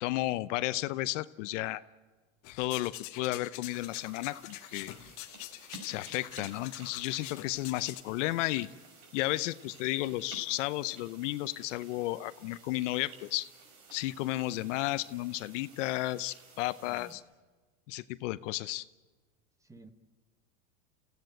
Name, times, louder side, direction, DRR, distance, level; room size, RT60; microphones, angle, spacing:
voice 1, 0.0-1.8 2.6-4.9 5.8-8.7 9.1-13.5 13.9-17.2 17.9-18.8, left 17 dB, 65° left, 15 dB, 0.8 m, -33 dB
sound 1, 2.4-8.0, left 16 dB, 45° left, 1.4 m, -45 dB
sound 2, 3.7-17.1, right 4 dB, 45° right, 6.2 m, -54 dB
voice 2, 16.8-17.2 19.6-19.9, right 2 dB, 10° right, 10 dB, 1.4 m, -52 dB
29.5 x 16.0 x 9.0 m, 1.4 s
supercardioid pair, 130°, 40 cm